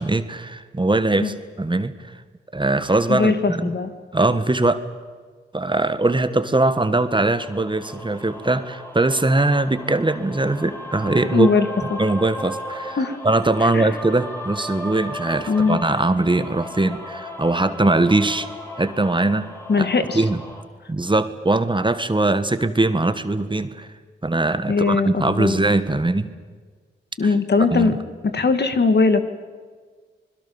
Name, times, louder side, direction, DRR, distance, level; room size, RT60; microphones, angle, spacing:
voice 1, 0.0-1.9 2.5-3.7 4.1-4.8 5.5-11.5 12.0-13.0 13.2-18.5 18.8-19.5 19.8-19.9 20.1-20.4 20.9-23.9 24.2-26.3 27.7-28.0, right 2 dB, 25° right, 11 dB, 1.7 m, -21 dB
voice 2, 3.1-3.9 11.3-12.0 13.0-13.2 13.6-13.9 15.5-15.8 19.7-20.2 24.7-25.6 27.2-27.9 28.3-29.2, left 4 dB, 60° left, 8 dB, 2.3 m, -20 dB
sound 1, 7.1-20.6, left 1 dB, 10° left, 5.9 m, -36 dB
26.5 x 21.5 x 7.3 m, 1.5 s
cardioid pair, 55°, 20 cm